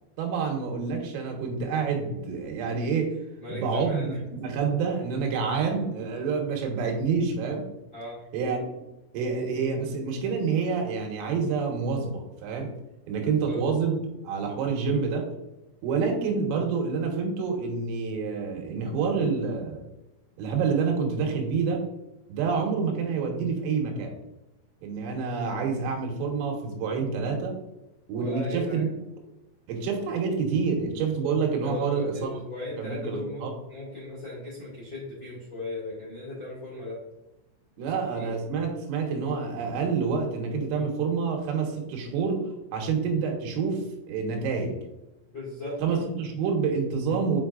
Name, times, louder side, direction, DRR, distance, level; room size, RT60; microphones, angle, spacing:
voice 1, 0.2-3.2 3.5-7.6 8.3-8.7 9.1-12.7 13.1-15.3 15.8-19.9 20.4-21.8 22.3-24.2 24.8-27.6 28.1-28.9 29.7-32.4 32.8-33.5 37.8-44.8 45.8-47.4, right 5 dB, 85° right, 2 dB, 3.8 m, -28 dB
voice 2, 3.4-4.2 7.9-8.2 13.2-13.6 28.1-28.8 31.6-37.0 37.8-38.3 45.3-45.8, left 2 dB, 40° left, -7 dB, 1.7 m, -37 dB
7.3 x 5.5 x 2.4 m, 0.96 s
omnidirectional pair, 5.8 m